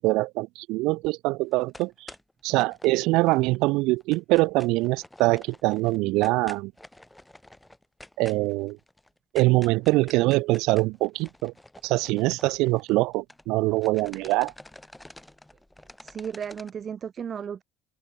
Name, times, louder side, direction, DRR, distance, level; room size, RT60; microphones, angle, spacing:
voice 1, 0.0-2.1 2.4-6.7 8.2-8.8 9.3-11.5 11.8-14.5, right 22 dB, 65° right, 1.2 m, -24 dB
sound 1, 1.5-3.6 3.9-13.5 13.8-16.7, left 1 dB, 5° left, 4.5 m, -48 dB
voice 2, 16.0-17.6, right 7 dB, 40° right, 3.6 m, -34 dB
open air
hypercardioid pair, 75°, 0 cm